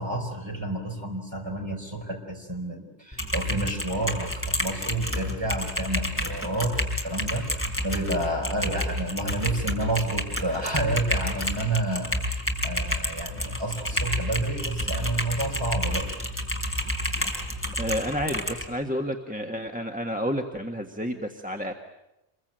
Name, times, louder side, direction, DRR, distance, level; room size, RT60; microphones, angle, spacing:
voice 1, 0.0-6.8 7.0-7.5 7.8-12.1 12.6-16.1, right 2 dB, 25° right, 1 dB, 4.8 m, -30 dB
Typing, 3.1-18.6, equal, 10° left, 3.9 m, -30 dB
voice 2, 17.8-21.7, equal, 5° right, 3 dB, 1.5 m, -30 dB
27.5 x 22.0 x 9.0 m, 0.92 s
omnidirectional pair, 1.1 m